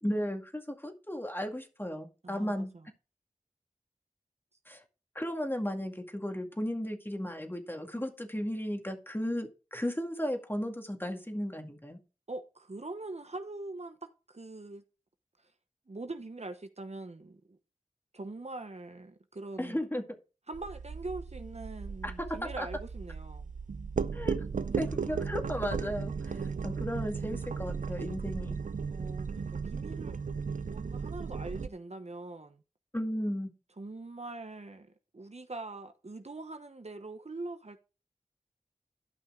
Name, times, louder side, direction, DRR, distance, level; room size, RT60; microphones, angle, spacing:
voice 1, 0.0-2.7 4.7-4.8 5.2-12.0 19.6-20.0 22.0-22.7 24.1-24.4 24.8-28.6 32.9-33.5, equal, 15° left, 2.1 m, -35 dB
voice 2, 2.2-2.9 12.3-14.0 14.3-14.8 15.9-17.6 18.1-19.8 20.5-23.5 26.2-26.6 28.9-30.2 30.7-32.6 33.8-37.8, right 2 dB, 60° right, 1.0 m, -43 dB
sound 1, 20.5-31.7, right 5 dB, 85° right, 0.4 m, -36 dB
12.0 x 5.7 x 3.8 m
wide cardioid pair, 40°, 13 cm